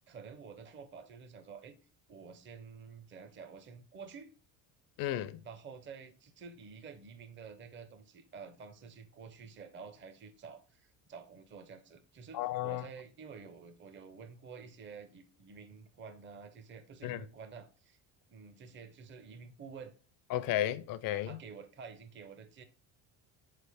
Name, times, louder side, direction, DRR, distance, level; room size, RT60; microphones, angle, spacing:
voice 1, 0.1-1.8 2.1-4.3 5.4-18.0 18.3-19.9 21.3-22.6, right 5 dB, 30° right, 0.6 m, -50 dB
voice 2, 5.0-5.4 12.3-12.9 17.0-17.2 20.3-21.4, left 13 dB, 60° left, 0.5 m, -33 dB
3.8 x 3.3 x 3.4 m
supercardioid pair, 85°, 39 cm